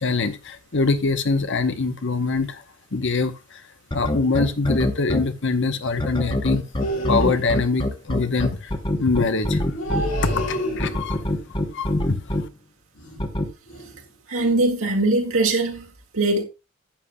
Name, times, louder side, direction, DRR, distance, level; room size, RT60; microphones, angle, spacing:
voice 1, 0.0-2.6 2.9-3.6 3.9-6.6 7.1-8.7 9.0-9.6 10.2-11.3 11.7-12.5, left 3 dB, 55° left, 0.9 m, -24 dB
sound 1, 3.9-5.2 6.0-10.0 10.8-12.4 13.2-13.5, left 1 dB, 20° left, 1.0 m, -23 dB
sound 2, 6.8-7.7 9.7-11.3 13.0-13.3 13.7-14.0 14.4-14.6, right 1 dB, 80° left, 3.9 m, -29 dB
voice 2, 14.3-16.4, right 2 dB, 65° right, 1.8 m, -21 dB
11.5 x 8.3 x 2.3 m
head